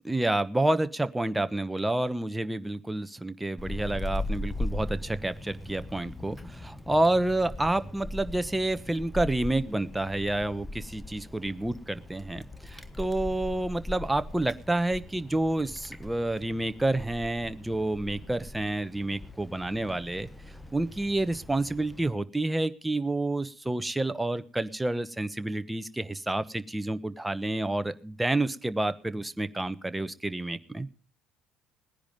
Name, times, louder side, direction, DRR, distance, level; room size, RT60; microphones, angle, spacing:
voice 1, 0.0-20.3 20.7-30.9, right 2 dB, 10° right, 12 dB, 1.1 m, -29 dB
Wind, 3.6-22.1, left 1 dB, 10° left, 1.4 m, -40 dB
18.0 x 10.5 x 5.2 m, 0.41 s
hypercardioid pair, 60°, 0 cm